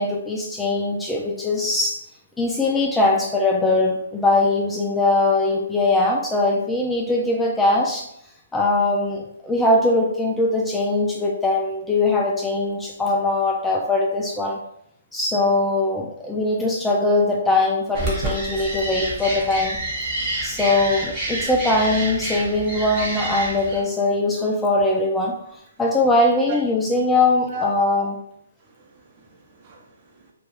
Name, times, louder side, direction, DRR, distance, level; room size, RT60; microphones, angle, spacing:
voice 1, 0.0-2.0 2.4-8.1 8.5-14.6 15.1-19.8 20.4-25.3 25.8-28.2, left 2 dB, 5° left, -2 dB, 0.3 m, -21 dB
sound 1, 17.9-23.8, right 2 dB, 20° right, 1.2 m, -28 dB
voice 2, 27.5-28.1 28.6-30.3, equal, 35° right, 0 dB, 0.6 m, -36 dB
2.4 x 2.2 x 3.2 m, 0.74 s
hypercardioid pair, 140°, 0 cm